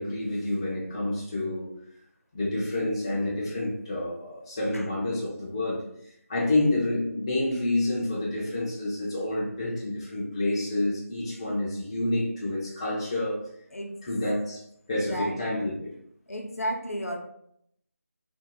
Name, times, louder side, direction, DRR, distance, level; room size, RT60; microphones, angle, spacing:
voice 1, 0.0-1.7 2.3-5.8 6.3-13.4 14.1-15.9, left 1 dB, 20° left, -7 dB, 0.5 m, -28 dB
voice 2, 16.3-17.2, right 1 dB, 75° left, 3 dB, 0.7 m, -33 dB
2.5 x 2.4 x 2.8 m, 0.72 s
figure-of-eight pair, 165°, 8 cm